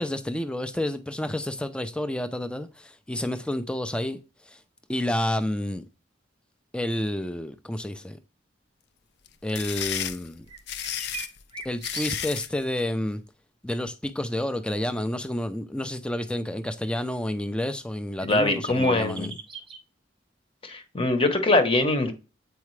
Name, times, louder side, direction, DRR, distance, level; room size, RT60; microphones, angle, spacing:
voice 1, 0.0-4.2 4.5-4.6 4.9-5.9 6.7-8.2 9.4-10.5 11.6-13.2 13.6-19.3, left 1 dB, 5° left, 0.4 m, -30 dB
sound 1, 9.3-12.6, left 10 dB, 55° left, 0.5 m, -32 dB
sound 2, 10.5-12.6 12.8-12.9 18.2-19.8, right 4 dB, 25° right, 0.8 m, -40 dB
voice 2, 18.2-19.3 20.6-22.1, left 2 dB, 30° left, 1.0 m, -23 dB
8.1 x 4.8 x 3.2 m
head